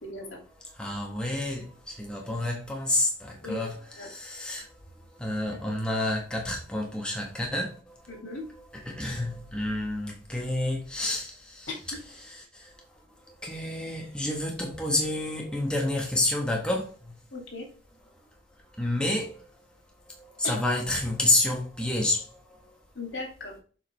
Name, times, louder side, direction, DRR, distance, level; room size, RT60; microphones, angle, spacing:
voice 1, 0.0-0.4 3.4-3.7 4.0-4.1 5.5-5.8 8.1-8.5 11.7-11.8 17.3-17.7 20.4-20.6 22.9-23.6, left 3 dB, 75° left, 2.6 m, -37 dB
voice 2, 0.5-8.2 8.7-17.2 18.7-19.8 20.1-22.8, left 1 dB, 5° left, 1.3 m, -30 dB
7.4 x 4.8 x 3.4 m
head